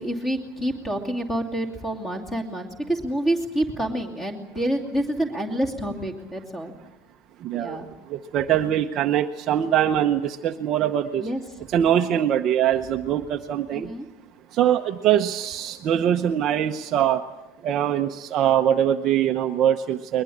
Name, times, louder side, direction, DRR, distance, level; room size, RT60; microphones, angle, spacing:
voice 1, 0.0-6.7 7.5-7.9 11.2-11.4 13.7-14.1, right 1 dB, 10° left, 3 dB, 2.7 m, -28 dB
voice 2, 7.4-11.3 11.7-13.9 14.5-17.2 17.6-20.2, right 10 dB, 30° right, 5 dB, 0.8 m, -23 dB
21.5 x 21.0 x 8.6 m, 1.0 s
supercardioid pair, 175°, 0 cm